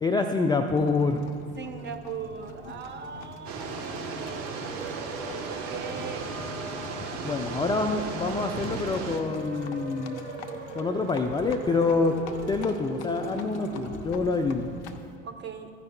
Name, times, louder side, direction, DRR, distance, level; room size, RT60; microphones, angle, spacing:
voice 1, 0.0-1.3 7.2-10.3 10.8-12.1 12.5-14.7, left 3 dB, 10° left, 5 dB, 0.4 m, -26 dB
Livestock farm animals working animals, 0.8-15.2, left 5 dB, 60° left, 0.8 m, -45 dB
voice 2, 1.6-6.5 7.8-8.1 15.2-15.7, right 6 dB, 30° right, 8 dB, 0.9 m, -40 dB
sound 1, 3.5-9.2, right 5 dB, 50° right, 1.1 m, -36 dB
sound 2, 4.6-14.0, right 3 dB, 80° right, 2.6 m, -40 dB
15.0 x 9.9 x 2.2 m, 2.3 s
figure-of-eight pair, 65°, 37 cm